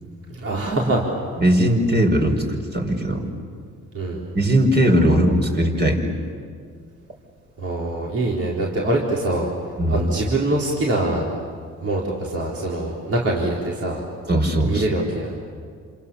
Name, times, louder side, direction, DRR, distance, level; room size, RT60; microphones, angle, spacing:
voice 1, 0.3-1.0 3.9-4.2 7.6-9.5 9.9-11.3 11.8-14.0 14.6-15.4, right 2 dB, 50° right, -3 dB, 4.3 m, -24 dB
voice 2, 1.4-3.2 4.3-6.0 9.8-10.0 14.3-14.8, equal, 35° right, 3 dB, 5.1 m, -19 dB
28.5 x 27.5 x 7.2 m, 2.1 s
cardioid pair, 90°, 30 cm